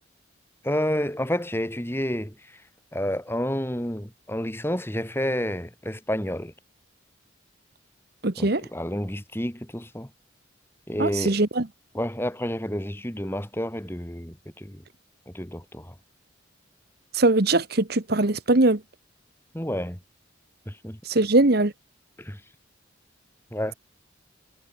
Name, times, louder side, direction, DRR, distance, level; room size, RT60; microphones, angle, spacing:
voice 1, 0.6-2.3 2.9-6.5 8.4-10.1 10.9-11.4 11.9-14.8 15.3-15.9 19.5-20.0 20.7-21.0 22.2-22.4 23.5-23.7, equal, 10° left, 3.7 m, -29 dB
voice 2, 8.2-8.6 11.0-11.7 17.1-18.8 21.1-21.7, right 2 dB, 55° right, 1.3 m, -21 dB
head